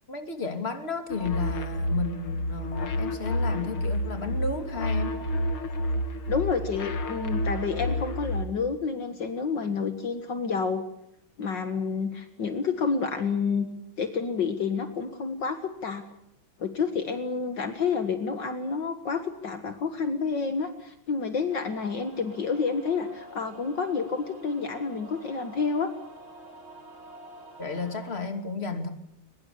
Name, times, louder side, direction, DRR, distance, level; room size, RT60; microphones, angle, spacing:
voice 1, 0.1-5.2 27.6-28.9, left 4 dB, 30° left, 7 dB, 3.0 m, -33 dB
sound 1, 1.1-8.4, left 1 dB, 90° left, 2.9 m, -29 dB
voice 2, 6.3-10.8 11.4-13.7 14.0-15.6 15.8-16.1 16.6-25.9, left 5 dB, 60° left, 8 dB, 2.3 m, -29 dB
sound 2, 21.5-28.3, right 1 dB, 85° right, 5.7 m, -47 dB
23.0 x 21.5 x 8.6 m, 0.74 s
omnidirectional pair, 2.2 m